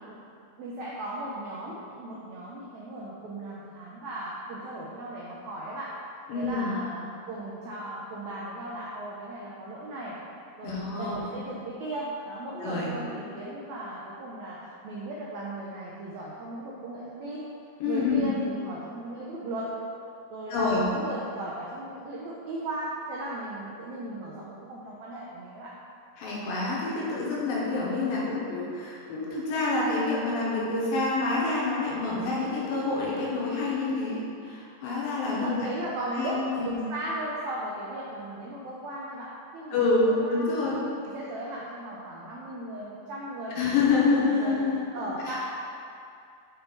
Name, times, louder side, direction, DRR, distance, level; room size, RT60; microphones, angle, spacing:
voice 1, 0.6-5.9 6.3-10.1 10.6-17.5 17.8-19.7 20.3-25.7 35.4-40.7 41.0-44.6 44.9-45.5, right 1 dB, 80° right, -5 dB, 1.6 m, -37 dB
voice 2, 6.3-6.8 10.6-11.2 12.6-12.9 17.8-18.3 20.5-20.9 26.2-35.7 36.1-36.8 39.7-40.8 43.5-44.8 45.2-45.3, left 3 dB, 85° left, -5 dB, 2.8 m, -27 dB
7.0 x 4.4 x 3.9 m, 2.5 s
omnidirectional pair, 4.1 m